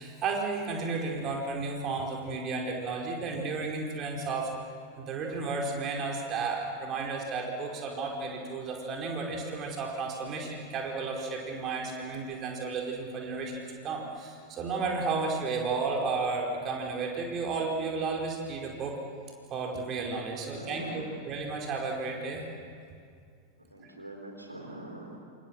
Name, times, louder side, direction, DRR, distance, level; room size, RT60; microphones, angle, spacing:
voice 1, 0.0-4.5 5.0-19.0 19.5-22.4, right 4 dB, 30° right, 1 dB, 4.6 m, -33 dB
voice 2, 20.4-21.2 23.7-25.2, right 1 dB, 85° right, 2 dB, 3.9 m, -43 dB
27.5 x 27.0 x 7.4 m, 2.2 s
figure-of-eight pair, 90°, 0 cm